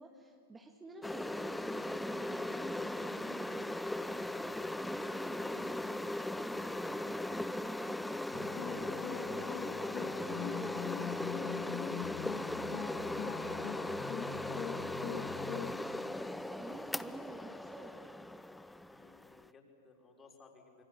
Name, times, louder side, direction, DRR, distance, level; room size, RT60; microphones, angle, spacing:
voice 1, 0.0-6.0 6.4-17.9, right 3 dB, 15° right, 3 dB, 2.0 m, -50 dB
sound 1, 1.0-19.5, left 1 dB, 5° left, 0.6 m, -39 dB
sound 2, 8.3-15.7, left 9 dB, 40° left, 2.3 m, -42 dB
voice 2, 18.9-20.8, left 4 dB, 20° left, 1 dB, 5.7 m, -60 dB
26.0 x 24.0 x 8.7 m, 2.7 s
figure-of-eight pair, 95°, 0 cm